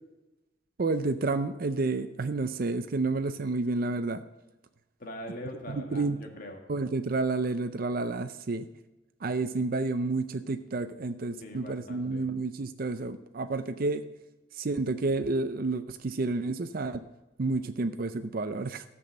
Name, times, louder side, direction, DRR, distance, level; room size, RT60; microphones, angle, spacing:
voice 1, 0.8-4.2 5.7-6.2 6.7-8.7 9.2-14.0 14.5-17.0 17.4-18.8, right 3 dB, 50° right, 9 dB, 0.5 m, -30 dB
voice 2, 5.0-6.6 11.4-12.3, left 1 dB, 50° left, 3 dB, 1.7 m, -42 dB
13.5 x 6.1 x 7.5 m, 1.1 s
head